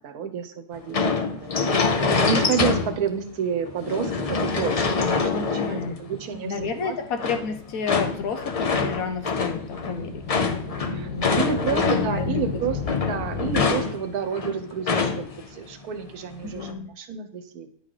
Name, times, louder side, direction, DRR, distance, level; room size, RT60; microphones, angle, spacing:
voice 1, 0.0-6.9 10.8-17.7, right 7 dB, 75° right, 9 dB, 1.3 m, -30 dB
sound 1, 0.9-3.2 3.7-6.2 7.2-12.3 12.6-15.5 15.7-15.8 16.3-16.7, left 4 dB, 55° left, 0.4 m, -25 dB
voice 2, 5.3-6.0 6.4-10.4 10.7-11.4 11.7-12.7 16.4-16.9, left 5 dB, 70° left, 7 dB, 1.3 m, -31 dB
sound 2, 7.2-13.7, left 4 dB, 90° left, 1.6 m, -34 dB
10.0 x 3.9 x 4.9 m, 0.65 s
omnidirectional pair, 1.6 m